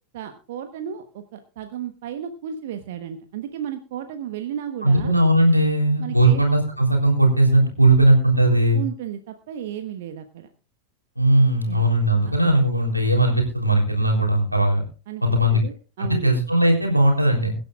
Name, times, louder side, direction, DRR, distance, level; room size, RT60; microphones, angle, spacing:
voice 1, 0.1-5.1 6.0-6.5 8.7-10.5 11.7-11.8 12.2-12.3 15.1-16.3, right 9 dB, 55° right, 7 dB, 1.2 m, -34 dB
voice 2, 4.8-8.8 11.2-14.8 15.2-15.6 16.0-17.5, right 1 dB, 85° right, 2 dB, 3.4 m, -18 dB
23.0 x 10.5 x 2.4 m, 0.35 s
figure-of-eight pair, 90°, 0 cm